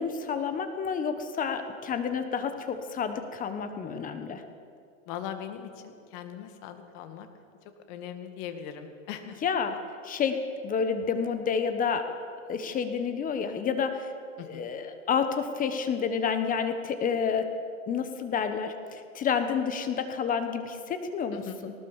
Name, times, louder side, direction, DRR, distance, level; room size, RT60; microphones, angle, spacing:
voice 1, 0.0-4.4 9.4-9.8 10.0-12.1 12.5-14.1 14.4-17.5 17.9-21.7, left 6 dB, 20° left, 8 dB, 1.2 m, -29 dB
voice 2, 5.1-7.3 7.9-9.4 14.4-14.7 21.3-21.6, left 9 dB, 45° left, 7 dB, 2.2 m, -40 dB
19.5 x 18.5 x 7.3 m, 2.3 s
supercardioid pair, 145°, 39 cm